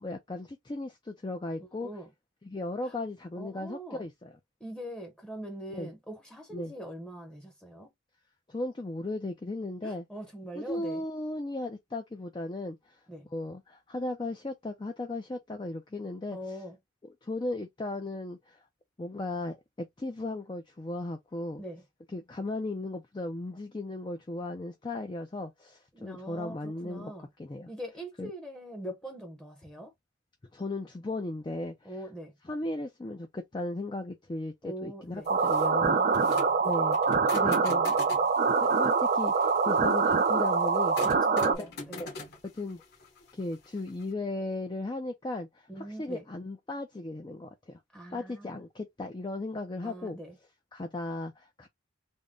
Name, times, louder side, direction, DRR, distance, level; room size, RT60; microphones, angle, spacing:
voice 1, 0.0-1.9 2.4-4.3 5.7-5.9 6.5-6.7 8.5-10.0 10.6-13.0 13.3-16.6 17.2-18.6 19.0-21.6 22.1-27.1 27.4-27.7 28.2-28.3 30.5-31.9 32.5-36.3 36.6-37.0 37.3-38.0 38.5-41.0 41.4-41.5 41.9-42.1 42.5-42.8 43.3-47.8 48.1-50.2 50.7-51.7, left 2 dB, 20° left, 0.4 m, -36 dB
voice 2, 1.6-2.1 2.8-2.9 3.4-4.0 4.6-7.9 9.8-11.0 13.1-13.3 16.3-16.8 21.6-21.8 25.9-27.3 27.7-29.9 31.8-32.4 34.6-35.3 35.8-36.4 41.0-42.1 45.7-46.2 47.9-48.6 49.8-50.4, equal, 5° left, 0.8 m, -42 dB
sound 1, 35.2-44.1, left 3 dB, 50° left, 1.2 m, -45 dB
sound 2, 35.3-41.5, right 4 dB, 40° right, 0.4 m, -25 dB
3.6 x 2.1 x 3.7 m
head